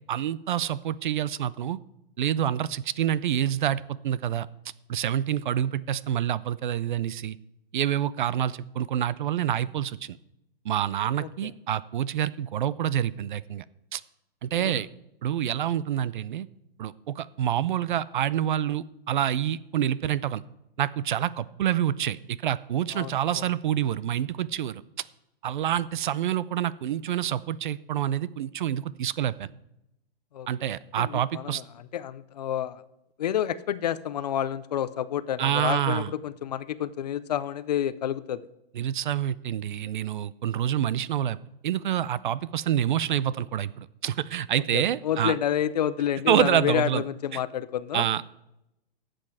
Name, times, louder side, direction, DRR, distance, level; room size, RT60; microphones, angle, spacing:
voice 1, 0.1-1.8 2.2-4.5 4.9-7.4 7.7-10.2 10.6-13.6 13.9-14.0 14.4-14.9 15.2-16.5 16.8-20.4 20.8-24.8 25.4-29.5 30.5-31.6 35.4-36.1 38.7-41.4 41.6-45.3 46.3-47.0 47.3-47.4 47.9-48.2, right 10 dB, 55° right, 19 dB, 0.4 m, -27 dB
voice 2, 22.9-23.5 30.3-30.5 31.0-31.6 31.9-32.8 33.2-38.4 44.7-48.1, left 10 dB, 45° left, 16 dB, 0.5 m, -29 dB
13.0 x 7.7 x 4.7 m, 0.85 s
hypercardioid pair, 170°, 30 cm